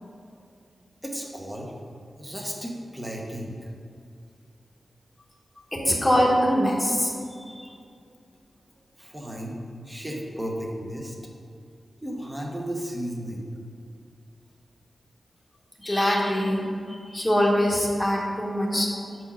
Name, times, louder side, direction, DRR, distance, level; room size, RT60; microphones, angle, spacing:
voice 1, 1.0-1.7 2.2-3.6 9.0-9.6 9.9-11.1 12.0-13.5, equal, 10° right, -1 dB, 1.0 m, -34 dB
voice 2, 5.7-7.8 15.8-19.2, equal, 10° left, -3 dB, 1.2 m, -24 dB
5.7 x 4.4 x 5.7 m, 2.4 s
wide cardioid pair, 110°, 0 cm